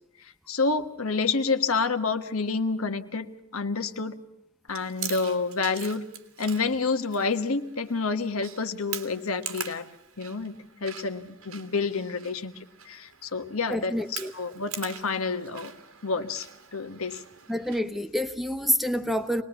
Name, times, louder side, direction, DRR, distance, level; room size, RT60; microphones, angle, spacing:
voice 1, 0.2-4.2 4.7-6.1 6.4-9.9 10.2-12.5 12.8-15.7 16.0-16.5 16.7-17.2, left 4 dB, 80° left, 1.4 m, -29 dB
Chewing mastication, 4.7-17.8, right 8 dB, 80° right, 2.3 m, -43 dB
voice 2, 13.7-14.3 17.5-19.4, equal, ahead, 1.1 m, -27 dB
25.5 x 20.0 x 7.1 m
head